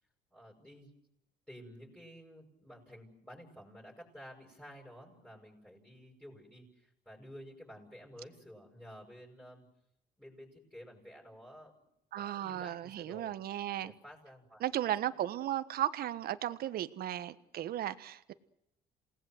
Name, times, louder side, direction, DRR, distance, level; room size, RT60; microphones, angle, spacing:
voice 1, 0.3-0.9 1.5-9.7 10.2-11.9 12.1-13.3 13.8-14.7, equal, 5° left, 7.7 m, -52 dB
voice 2, 12.1-13.9 14.6-18.3, right 12 dB, 65° right, 1.4 m, -35 dB
28.0 x 19.0 x 8.0 m
cardioid pair, 110°, 17 cm